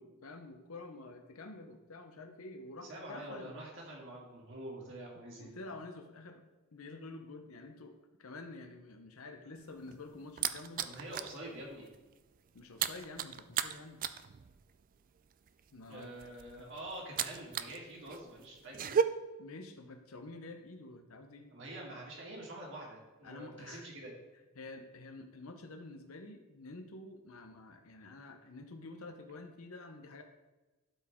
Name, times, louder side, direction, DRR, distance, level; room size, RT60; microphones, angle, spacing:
voice 1, 0.0-3.6 4.8-4.9 5.4-6.4 6.7-10.9 12.5-14.0 15.7-16.3 16.6-16.7 19.4-21.5 23.2-23.9 24.6-30.2, left 2 dB, 70° left, 5 dB, 0.7 m, -49 dB
voice 2, 2.9-5.6 10.8-11.9 15.9-19.0 21.5-24.1, right 1 dB, 60° right, -3 dB, 2.3 m, -46 dB
sound 1, 9.6-11.4 11.7-12.0 12.2-17.8 18.1-19.0, right 7 dB, 40° right, 0.3 m, -35 dB
12.0 x 4.9 x 3.6 m, 1.1 s
head